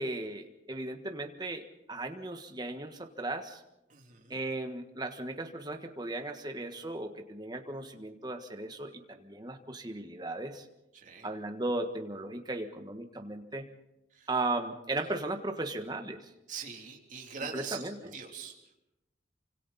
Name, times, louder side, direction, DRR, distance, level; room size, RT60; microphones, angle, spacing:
voice 1, 0.0-1.6 1.9-3.6 4.3-10.6 11.2-13.7 14.3-16.2 17.5-17.9, right 2 dB, 20° right, 5 dB, 1.5 m, -36 dB
voice 2, 3.9-4.4 10.9-11.3 14.1-14.3 16.5-18.5, right 6 dB, 40° right, 1 dB, 3.2 m, -43 dB
29.0 x 25.5 x 4.2 m, 0.93 s
head